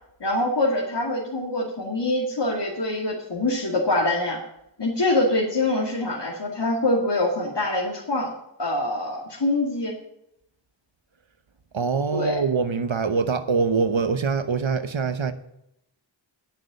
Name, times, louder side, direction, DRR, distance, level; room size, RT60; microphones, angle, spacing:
voice 1, 0.2-4.4 4.8-8.3 8.6-9.9 12.1-12.4, left 2 dB, 60° left, 2.3 m, -24 dB
voice 2, 11.7-15.3, right 5 dB, 80° right, 1.0 m, -24 dB
9.8 x 6.7 x 8.7 m
wide cardioid pair, 50°, 46 cm